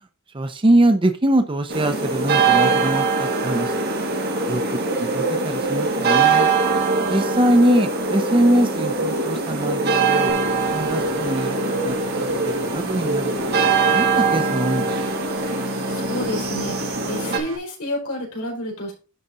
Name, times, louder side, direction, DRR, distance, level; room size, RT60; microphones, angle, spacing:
voice 1, 0.3-3.8 4.5-4.6 5.0-6.5 7.1-10.3 10.7-11.6 11.8-12.0 12.4-13.6 13.9-15.0, right 1 dB, 25° right, 7 dB, 0.7 m, -22 dB
sound 1, 1.7-17.4, right 4 dB, 50° right, 1.6 m, -22 dB
sound 2, 10.3-17.6, right 2 dB, 65° right, 1.7 m, -36 dB
voice 2, 15.6-18.9, left 1 dB, 80° left, -1 dB, 4.4 m, -30 dB
11.0 x 4.2 x 3.8 m, 0.34 s
head